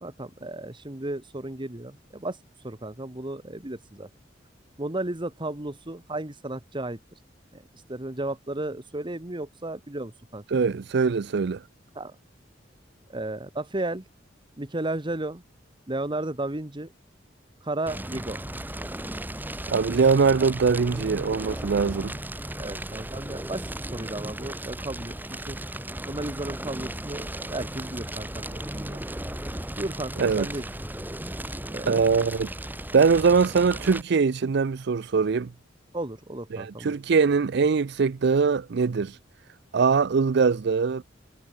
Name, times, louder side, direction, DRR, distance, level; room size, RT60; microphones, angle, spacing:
voice 1, 0.0-4.1 4.8-7.0 7.5-10.4 11.9-12.2 13.1-14.0 14.6-15.4 15.9-16.9 17.6-18.4 22.6-29.0 29.8-30.6 31.7-32.1 35.9-36.9, right 2 dB, 25° right, 1.5 m, -34 dB
voice 2, 10.5-11.6 19.7-22.2 30.2-30.5 31.9-32.5 32.9-35.5 36.5-39.1 39.7-41.0, right 5 dB, 65° right, 0.5 m, -22 dB
Fire, 17.9-34.0, right 1 dB, 10° right, 3.5 m, -36 dB
head